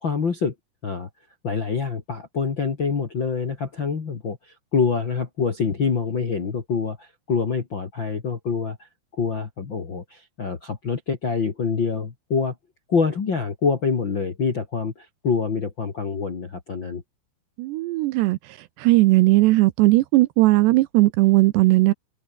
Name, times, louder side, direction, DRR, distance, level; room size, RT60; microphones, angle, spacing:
voice 1, 0.0-0.5 0.8-1.1 1.4-12.5 12.9-17.0, left 5 dB, 50° left, 1.5 m, -26 dB
voice 2, 17.6-18.4 18.8-21.9, right 19 dB, 85° right, 2.6 m, -17 dB
omnidirectional pair, 5.5 m